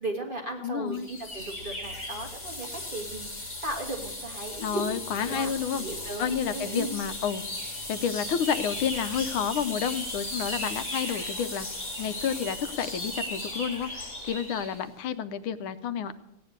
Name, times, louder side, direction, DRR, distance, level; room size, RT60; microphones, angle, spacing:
voice 1, 0.0-6.9, right 2 dB, 25° right, 1 dB, 1.6 m, -36 dB
voice 2, 0.6-1.1 4.6-5.8 6.2-7.4 7.9-11.7 12.0-16.1, left 8 dB, 80° left, 12 dB, 1.5 m, -30 dB
sound 1, 0.9-14.8, left 1 dB, 25° left, 7.5 m, -36 dB
16.0 x 9.1 x 7.8 m, 0.90 s
omnidirectional pair, 2.3 m